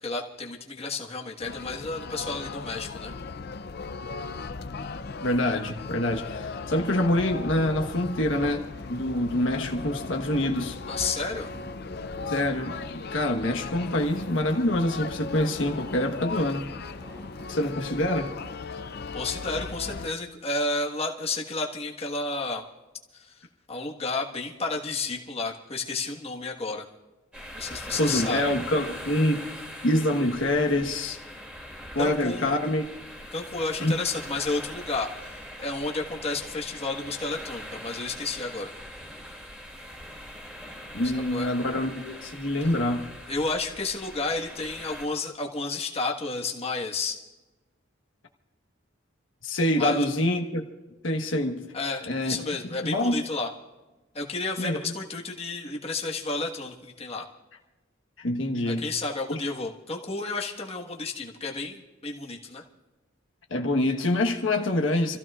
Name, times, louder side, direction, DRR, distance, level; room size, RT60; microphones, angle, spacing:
voice 1, 0.0-3.1 10.9-11.5 19.1-22.6 23.1-23.4 23.7-26.8 27.5-28.5 32.0-32.5 33.3-38.7 41.0-41.5 42.6-42.7 43.3-47.2 49.8-50.0 51.7-53.5 54.1-57.2 58.7-62.6, left 3 dB, 30° left, 1.4 m, -31 dB
sound 1, 1.4-20.1, left 4 dB, 50° left, 0.5 m, -37 dB
voice 2, 5.2-10.8 12.3-16.7 17.5-18.3 28.0-29.5 29.8-31.2 31.9-32.8 33.8-33.9 40.9-43.1 49.4-50.6 51.0-51.6 52.1-52.4 52.8-53.2 54.6-54.8 58.2-58.8 59.3-59.4 63.5-65.2, left 1 dB, 70° left, 1.2 m, -26 dB
sound 2, 6.5-17.6, right 1 dB, 25° right, 1.7 m, -49 dB
sound 3, 27.3-45.1, equal, 5° right, 2.5 m, -41 dB
28.0 x 15.0 x 2.4 m
head